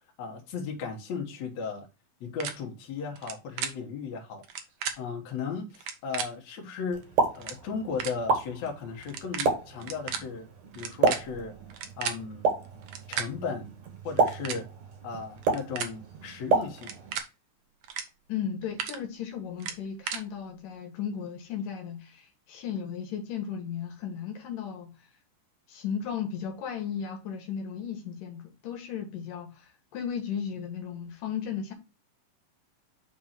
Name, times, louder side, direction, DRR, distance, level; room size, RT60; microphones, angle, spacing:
voice 1, 0.2-1.9 2.2-4.4 5.0-7.1 7.4-10.5 10.7-11.5 12.0-12.5 13.1-13.7 14.0-14.7 15.0-17.0, left 5 dB, 60° left, 2.5 m, -36 dB
sound 1, 2.4-2.5 3.2-3.3 3.6-3.7 4.4-4.9 5.7-6.3 7.0-7.1 7.3-7.6 8.0-8.1 9.0-9.5 9.8-10.2 10.7-12.2 12.8-13.3 14.1-14.6 15.4-15.9 16.8-17.2 17.8-18.0 18.4-19.0 19.6-20.2, right 8 dB, 80° right, 1.2 m, -34 dB
Explosion, 6.9-17.2, right 4 dB, 60° right, 2.7 m, -31 dB
voice 2, 18.3-24.9 25.7-31.7, left 8 dB, 80° left, 3.0 m, -35 dB
6.0 x 3.6 x 5.8 m
omnidirectional pair, 3.8 m